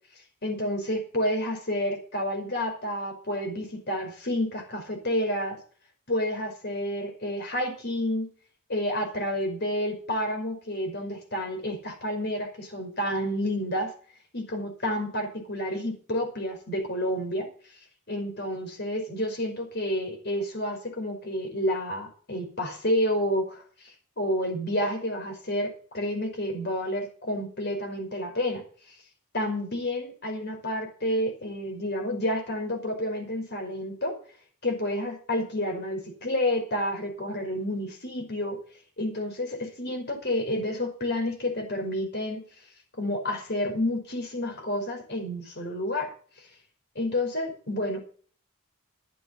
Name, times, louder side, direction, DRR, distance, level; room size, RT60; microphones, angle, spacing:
voice 1, 0.4-5.6 6.1-8.3 8.7-13.9 14.3-17.5 18.1-28.6 29.3-34.2 34.6-38.6 39.0-42.4 43.0-46.1 46.4-46.5 47.0-48.0, left 1 dB, 50° left, 4 dB, 5.5 m, -30 dB
13.0 x 8.9 x 7.3 m, 0.43 s
head